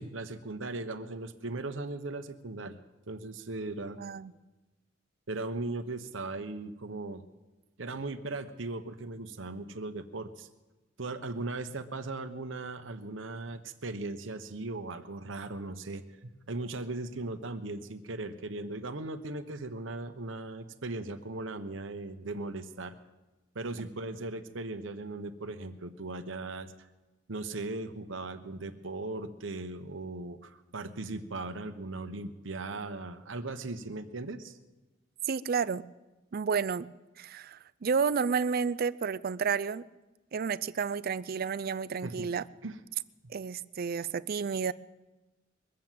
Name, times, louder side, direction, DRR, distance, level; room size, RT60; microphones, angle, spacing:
voice 1, 0.0-2.8 3.1-4.0 5.3-7.2 7.8-10.5 11.0-22.9 23.5-26.7 27.3-34.6 42.0-42.3 42.6-42.8 43.2-43.3, right 2 dB, 80° right, 7 dB, 1.1 m, -38 dB
voice 2, 4.0-4.3 35.3-35.8 36.3-36.9 37.2-39.8 40.3-42.4 43.3-44.7, right 6 dB, 50° right, 16 dB, 0.4 m, -31 dB
22.5 x 7.6 x 7.5 m, 1.1 s
head